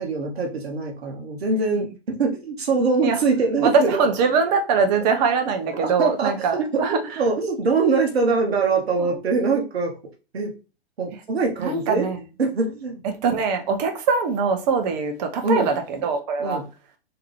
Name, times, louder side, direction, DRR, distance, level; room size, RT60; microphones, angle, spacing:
voice 1, 0.0-4.1 5.8-6.3 6.7-9.9 10.3-10.5 11.0-12.1 12.4-13.0 15.4-15.7 16.4-16.6, right 4 dB, 75° right, 1.0 m, -23 dB
voice 2, 3.6-7.0 9.0-9.2 11.6-12.2 13.0-16.6, right 5 dB, 40° right, 0.9 m, -22 dB
3.7 x 2.8 x 3.2 m
figure-of-eight pair, 110°, 31 cm